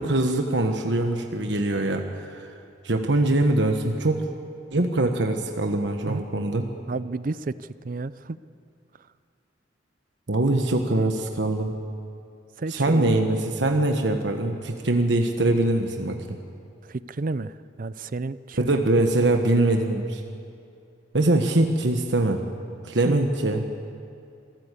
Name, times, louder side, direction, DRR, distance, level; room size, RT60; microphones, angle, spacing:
voice 1, 0.0-2.5 2.8-4.3 4.7-6.7 10.3-11.7 12.7-16.4 18.6-20.2 21.1-22.5 22.8-23.6, right 2 dB, 65° right, 4 dB, 1.3 m, -23 dB
voice 2, 6.9-8.4 12.6-13.2 16.8-18.8 23.0-23.2, right 3 dB, 45° right, 16 dB, 0.5 m, -31 dB
26.5 x 14.0 x 8.3 m, 2.5 s
head